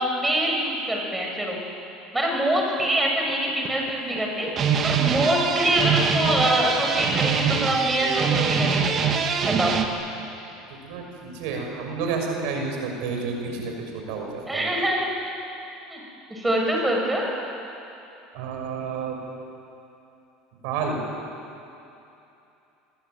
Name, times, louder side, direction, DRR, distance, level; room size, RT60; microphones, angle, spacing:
voice 1, 0.0-1.6 2.1-4.5 4.8-9.0 9.4-9.8 14.5-15.1 15.9-16.0 16.3-17.3, right 1 dB, 10° right, 0 dB, 6.7 m, -24 dB
sound 1, 2.8-2.9 3.5-4.2 4.5-9.9, right 6 dB, 40° right, 2.5 m, -23 dB
voice 2, 10.7-14.7 18.3-19.3 20.6-21.0, right 4 dB, 75° right, 2 dB, 6.1 m, -30 dB
27.5 x 23.0 x 9.2 m, 2.8 s
supercardioid pair, 115°, 0 cm